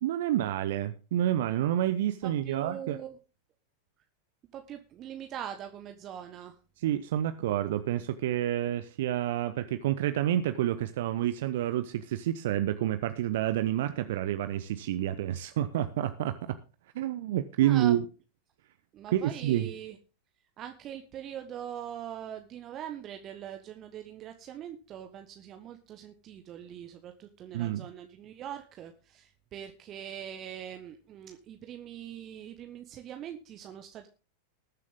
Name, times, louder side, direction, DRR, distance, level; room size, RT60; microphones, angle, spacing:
voice 1, 0.0-3.0 6.8-16.6 16.9-18.0 19.1-19.7 27.5-27.9, right 12 dB, 55° right, 10 dB, 0.8 m, -29 dB
voice 2, 2.2-3.2 4.5-6.6 17.6-18.0 18.9-20.0 20.6-34.1, right 10 dB, 30° right, 6 dB, 1.2 m, -42 dB
20.0 x 7.5 x 3.7 m, 0.33 s
figure-of-eight pair, 90°, 0 cm